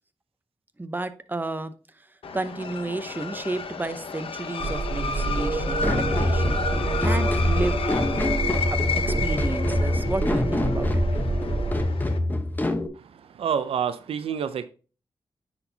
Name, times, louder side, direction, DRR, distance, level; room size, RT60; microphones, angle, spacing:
voice 1, 0.8-1.7 2.3-6.6 7.0-7.8 9.0-11.0, right 2 dB, 20° right, 0.7 m, -32 dB
sound 1, 2.2-12.2, left 5 dB, 75° left, 0.8 m, -32 dB
sound 2, 4.6-11.8, right 3 dB, 60° right, 0.9 m, -28 dB
sound 3, 5.8-12.9, left 1 dB, 20° left, 0.9 m, -26 dB
voice 2, 13.4-14.6, right 7 dB, 90° right, 0.5 m, -27 dB
9.7 x 4.4 x 2.7 m
cardioid pair, 65°, 9 cm